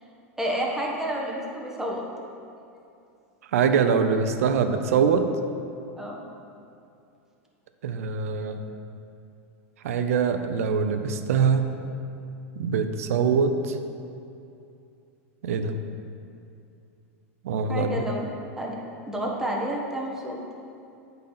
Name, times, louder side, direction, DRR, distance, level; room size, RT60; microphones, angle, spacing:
voice 1, 0.4-2.0 6.0-6.2 17.7-18.3 18.6-18.7 19.1-20.4, right 1 dB, 5° right, -3 dB, 1.4 m, -29 dB
voice 2, 3.5-5.3 7.8-8.7 9.8-11.7 12.6-13.8 15.4-15.8 17.4-17.9, right 6 dB, 75° right, 8 dB, 0.6 m, -23 dB
8.4 x 4.1 x 5.7 m, 2.6 s
hypercardioid pair, 110°, 8 cm